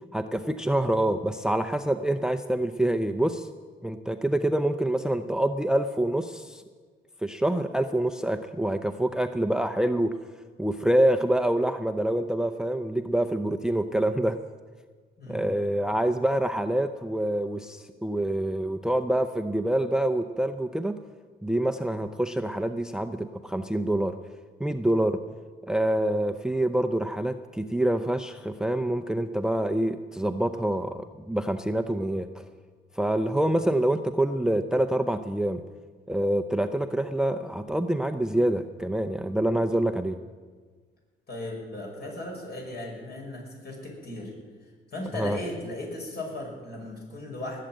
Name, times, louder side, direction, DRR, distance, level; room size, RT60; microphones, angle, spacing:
voice 1, 0.1-3.5 3.8-6.6 7.2-10.2 10.6-14.4 15.3-21.0 21.4-24.1 24.6-25.2 25.7-32.4 33.0-35.6 36.1-40.2 45.1-45.4, right 1 dB, 5° right, 10 dB, 0.6 m, -26 dB
voice 2, 15.2-15.5 41.3-44.3 44.9-47.6, left 1 dB, 55° left, 0 dB, 6.1 m, -36 dB
19.5 x 7.5 x 9.0 m, 1.5 s
cardioid pair, 90°, 20 cm